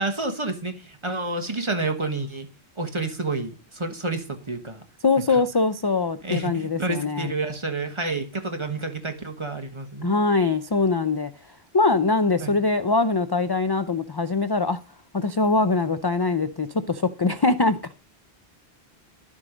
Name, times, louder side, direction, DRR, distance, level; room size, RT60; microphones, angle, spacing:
voice 1, 0.0-2.5 2.8-4.8 5.3-5.4 6.2-10.2 12.4-12.6, right 3 dB, 30° right, 1.2 m, -29 dB
voice 2, 5.0-7.3 10.0-11.3 11.7-14.8 15.1-17.9, left 3 dB, 35° left, 0.4 m, -22 dB
11.5 x 7.4 x 5.0 m
omnidirectional pair, 1.1 m